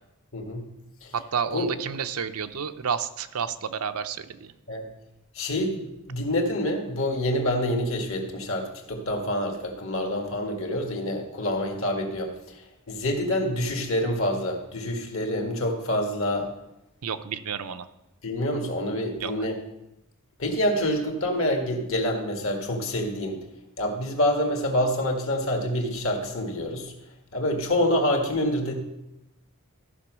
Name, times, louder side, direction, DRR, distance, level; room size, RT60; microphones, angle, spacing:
voice 1, 0.3-0.7 1.0-1.1 1.5-1.7 4.7-4.8 5.4-16.5 18.2-19.6 20.4-23.4 23.8-26.9 27.3-28.7, left 1 dB, 60° left, 2 dB, 1.8 m, -27 dB
voice 2, 1.1-4.5 17.0-17.9 19.2-19.5, right 7 dB, 75° right, 10 dB, 0.6 m, -30 dB
13.5 x 5.3 x 6.1 m, 0.91 s
head